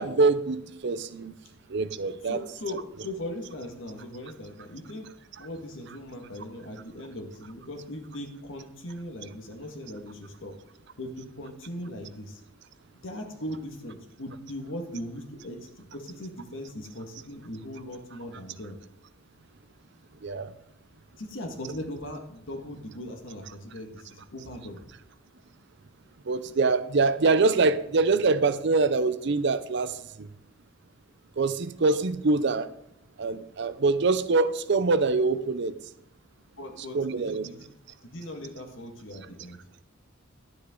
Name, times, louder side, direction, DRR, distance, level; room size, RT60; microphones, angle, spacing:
voice 1, 0.0-1.3 1.7-2.4 20.2-20.5 26.3-30.3 31.4-32.7 33.2-35.7 36.9-37.5, right 3 dB, 55° right, 14 dB, 0.6 m, -24 dB
voice 2, 2.2-5.1 5.4-10.6 11.0-12.4 13.0-18.8 21.2-24.9 36.6-37.6 38.0-39.6, left 1 dB, 65° left, 4 dB, 1.8 m, -39 dB
11.5 x 9.9 x 3.8 m, 0.76 s
head